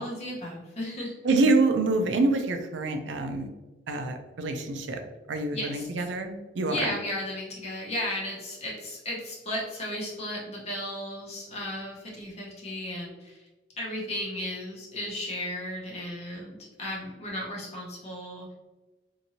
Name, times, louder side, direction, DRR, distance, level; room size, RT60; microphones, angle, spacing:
voice 1, 0.0-1.2 5.5-6.1 6.7-13.5 13.8-18.5, left 1 dB, 35° left, -3 dB, 0.9 m, -35 dB
voice 2, 1.2-3.5 3.9-5.0 5.3-7.0, right 3 dB, 90° right, 6 dB, 0.4 m, -26 dB
2.9 x 2.6 x 2.7 m, 1.1 s
head